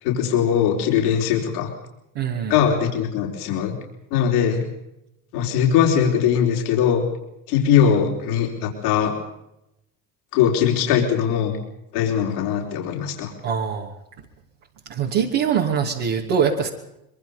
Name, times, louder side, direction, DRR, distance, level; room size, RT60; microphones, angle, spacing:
voice 1, 0.0-1.7 2.5-3.8 4.1-4.6 5.3-7.0 7.5-9.1 10.3-11.6 11.9-13.3, left 8 dB, 85° left, 1 dB, 4.3 m, -20 dB
voice 2, 2.1-2.5 13.4-13.9 14.9-16.7, right 7 dB, 65° right, -1 dB, 3.0 m, -23 dB
23.5 x 23.0 x 5.5 m, 0.85 s
supercardioid pair, 80°, 44 cm